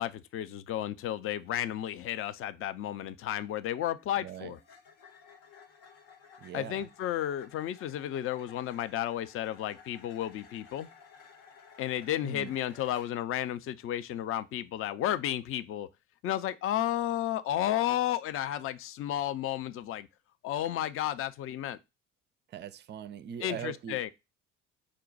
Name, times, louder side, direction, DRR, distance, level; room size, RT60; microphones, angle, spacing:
voice 1, 0.0-4.6 6.5-10.9 11.8-15.9 16.2-20.1 20.4-21.8 23.4-24.1, left 12 dB, 40° left, 0.4 m, -32 dB
sound 1, 3.9-13.3, left 6 dB, 75° left, 0.9 m, -56 dB
voice 2, 4.2-4.5 6.4-6.9 12.2-12.6 22.5-24.1, right 9 dB, 30° right, 0.4 m, -41 dB
5.1 x 2.2 x 3.8 m
hypercardioid pair, 55°, 36 cm